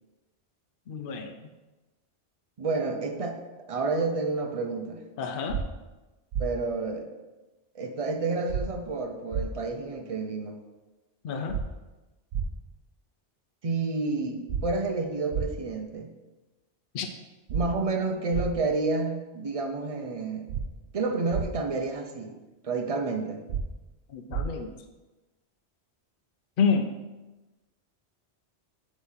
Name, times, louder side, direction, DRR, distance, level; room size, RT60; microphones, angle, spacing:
voice 1, 0.9-1.4 5.2-5.6 11.2-11.6 16.9-17.1 24.1-24.7 26.6-27.0, left 5 dB, 60° left, 6 dB, 0.7 m, -28 dB
voice 2, 2.6-3.4 3.7-5.0 6.4-7.1 7.7-10.6 13.6-16.1 17.5-20.5 20.9-22.4 22.6-23.4, right 3 dB, 40° right, 5 dB, 0.6 m, -30 dB
sound 1, 5.5-5.6 6.3-6.5 8.5-8.6 9.3-9.5 11.5-11.6 12.3-12.5 14.5-14.6 15.3-15.5 17.5-17.6 18.3-18.5 20.5-20.6 21.3-21.5 23.5-23.6 24.3-24.5, right 7 dB, 80° right, 0.9 m, -29 dB
7.7 x 3.1 x 5.6 m, 1.1 s
omnidirectional pair, 1.2 m